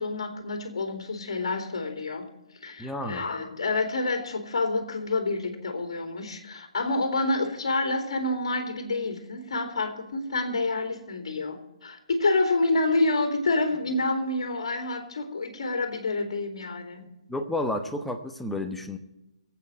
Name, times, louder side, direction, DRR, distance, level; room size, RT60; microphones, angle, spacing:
voice 1, 0.0-2.3 2.6-17.1, left 2 dB, 55° left, 2.6 m, -28 dB
voice 2, 2.8-3.3 17.3-19.0, left 1 dB, 5° left, 1.1 m, -31 dB
23.5 x 8.6 x 4.4 m
figure-of-eight pair, 130°, 3 cm